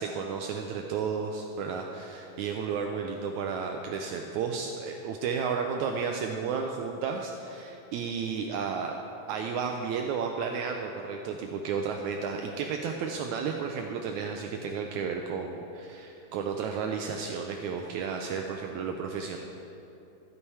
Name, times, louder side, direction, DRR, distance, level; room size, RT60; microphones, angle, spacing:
voice 1, 0.0-9.0 9.3-19.4, right 6 dB, 80° right, 3 dB, 1.7 m, -32 dB
13.0 x 8.6 x 4.7 m, 2.8 s
omnidirectional pair, 3.9 m